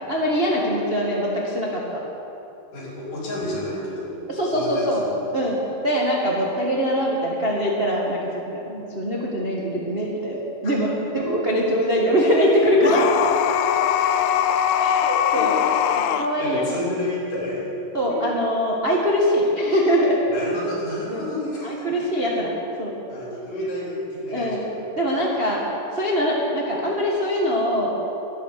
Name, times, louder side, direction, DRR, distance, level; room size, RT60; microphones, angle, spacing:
voice 1, 0.1-2.0 4.3-5.6 5.8-8.2 8.5-10.4 10.6-10.9 11.3-13.1 14.8-15.6 16.1-16.8 17.9-20.2 21.1-21.2 21.6-22.5 22.8-22.9 24.3-24.6 25.0-25.6 25.9-27.9, equal, 50° right, -4 dB, 0.6 m, -22 dB
voice 2, 2.7-5.2 10.6-11.4 15.3-15.6 16.4-17.7 18.1-18.2 20.3-21.9 23.1-24.9 25.1-25.2, left 1 dB, 65° left, -5 dB, 4.9 m, -31 dB
sound 1, 12.8-16.3, left 10 dB, 90° left, 2.4 m, -21 dB
12.5 x 11.5 x 6.7 m, 3.0 s
omnidirectional pair, 4.0 m